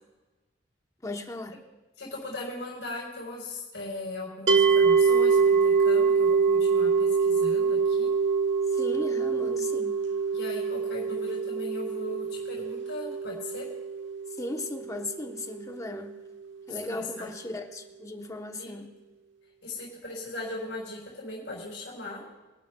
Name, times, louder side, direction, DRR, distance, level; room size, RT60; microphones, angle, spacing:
voice 1, 1.0-1.6 8.7-10.0 14.3-16.1 16.7-18.9, left 2 dB, 20° left, 4 dB, 0.9 m, -37 dB
voice 2, 2.0-8.1 10.3-13.7 16.7-17.3 18.6-18.7 19.6-22.2, left 2 dB, 85° left, -4 dB, 4.0 m, -38 dB
sound 1, 4.5-15.6, right 5 dB, 85° right, 1.1 m, -25 dB
23.0 x 12.0 x 2.3 m, 1.2 s
head